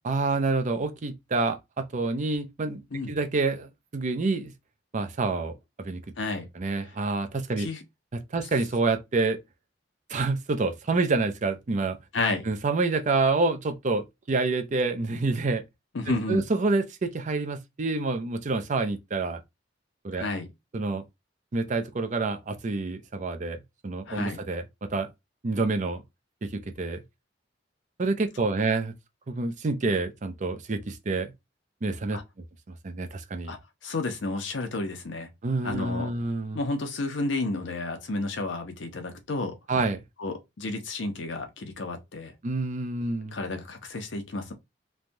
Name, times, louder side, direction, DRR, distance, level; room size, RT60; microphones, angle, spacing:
voice 1, 0.0-2.8 3.1-4.5 4.9-6.0 6.5-7.7 8.1-9.4 10.1-12.0 12.4-15.6 16.3-19.4 20.0-20.3 20.7-21.0 21.5-25.1 25.4-26.0 26.4-27.0 28.0-28.9 29.3-31.3 31.8-32.2 32.7-33.5 35.4-36.6 39.7-40.0 42.4-43.4, right 3 dB, 40° right, 0.5 m, -28 dB
voice 2, 6.2-6.5 7.6-7.8 12.1-12.5 15.9-16.4 20.1-20.5 24.1-24.4 32.1-32.2 33.5-33.6 33.8-35.3 35.6-36.1 36.5-39.6 40.2-42.3 43.3-44.5, left 2 dB, 80° left, 0.7 m, -31 dB
3.2 x 2.2 x 2.6 m
head